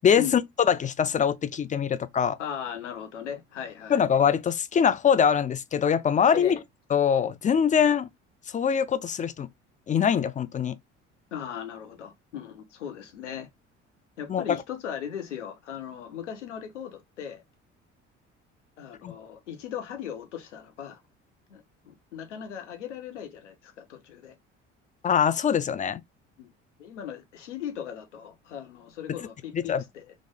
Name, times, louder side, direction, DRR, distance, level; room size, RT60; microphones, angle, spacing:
voice 1, 0.0-0.4 0.7-2.4 3.9-6.6 6.9-8.1 8.5-9.5 9.9-10.8 14.3-14.6 19.0-19.1 25.0-26.0 29.5-29.8, left 7 dB, 25° left, 0.3 m, -23 dB
voice 2, 2.4-4.0 6.3-6.6 11.3-13.5 14.2-17.4 18.8-21.0 21.5-24.4 26.4-26.5 26.8-30.1, left 9 dB, 85° left, 0.8 m, -38 dB
3.2 x 2.5 x 3.6 m
hypercardioid pair, 60°, 35 cm